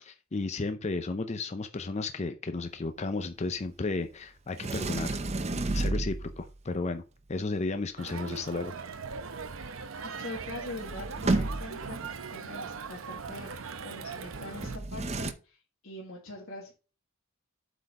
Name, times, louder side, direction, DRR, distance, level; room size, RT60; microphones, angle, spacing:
voice 1, 0.0-5.2 5.7-7.0 7.3-8.7, left 3 dB, 30° left, 0.5 m, -33 dB
Sliding door, 4.6-6.5 10.1-10.2 10.4-11.9 14.6-15.3, right 2 dB, 30° right, 0.6 m, -31 dB
Crowd, 8.0-14.8, right 5 dB, 70° right, 0.8 m, -40 dB
voice 2, 10.0-12.0 12.3-16.7, left 2 dB, 70° left, 1.8 m, -43 dB
8.1 x 4.0 x 5.4 m
head